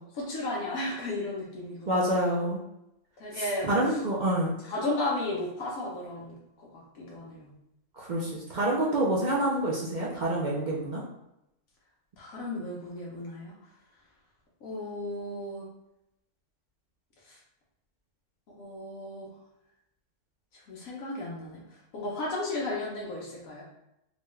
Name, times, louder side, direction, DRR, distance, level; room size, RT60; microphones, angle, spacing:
voice 1, 0.2-2.1 3.2-4.0 4.6-6.4 6.7-7.5 12.2-13.5 14.6-15.7 17.3-17.4 18.6-19.3 20.5-21.6 21.9-23.6, left 2 dB, 70° left, -4 dB, 1.3 m, -34 dB
voice 2, 1.9-2.6 3.3-4.5 8.0-11.0, right 1 dB, 65° right, -5 dB, 0.4 m, -27 dB
3.9 x 2.3 x 3.1 m, 0.86 s
omnidirectional pair, 1.5 m